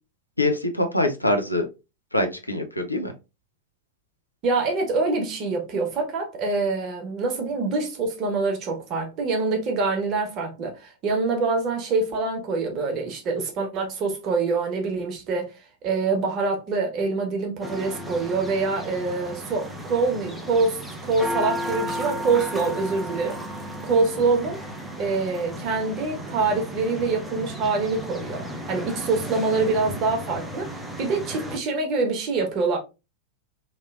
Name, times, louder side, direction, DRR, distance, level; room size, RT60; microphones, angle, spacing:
voice 1, 0.4-1.7 2.1-3.1, left 1 dB, 85° left, 0.5 m, -24 dB
voice 2, 4.4-15.5 15.8-23.4 23.8-24.6 25.0-32.8, right 3 dB, 35° right, 0.9 m, -25 dB
sound 1, 17.6-31.6, equal, ahead, 0.5 m, -34 dB
3.0 x 2.6 x 2.4 m
figure-of-eight pair, 90°, 0 cm